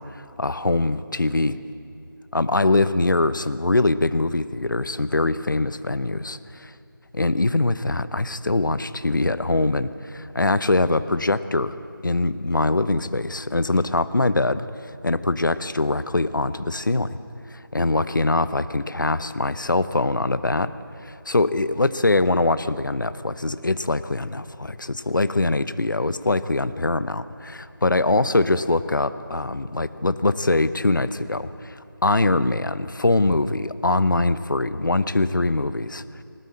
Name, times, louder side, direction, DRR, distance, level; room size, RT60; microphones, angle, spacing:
voice 1, 0.0-1.6 2.3-6.7 7.1-11.7 12.0-14.7 15.0-17.2 17.5-20.7 21.0-36.2, left 2 dB, 60° left, 14 dB, 0.9 m, -23 dB
20.5 x 18.5 x 8.6 m, 2.7 s
figure-of-eight pair, 175°, 12 cm